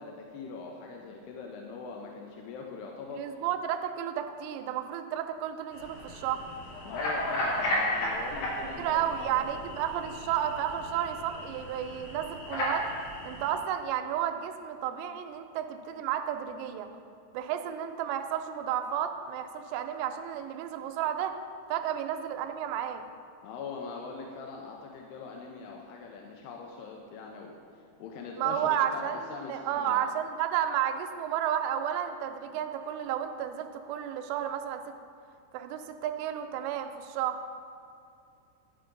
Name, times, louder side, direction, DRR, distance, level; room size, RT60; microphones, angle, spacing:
voice 1, 0.0-3.4 6.9-9.7 23.4-30.0, left 4 dB, 85° left, 0 dB, 2.4 m, -42 dB
voice 2, 3.1-6.4 8.8-12.9 13.2-16.9 17.3-21.4 21.7-23.1 28.4-34.8 35.5-37.4, right 10 dB, 85° right, 6 dB, 2.7 m, -32 dB
sound 1, 5.7-13.5, left 1 dB, 65° left, 2.9 m, -34 dB
10.0 x 5.7 x 3.8 m, 2.5 s
omnidirectional pair, 5.1 m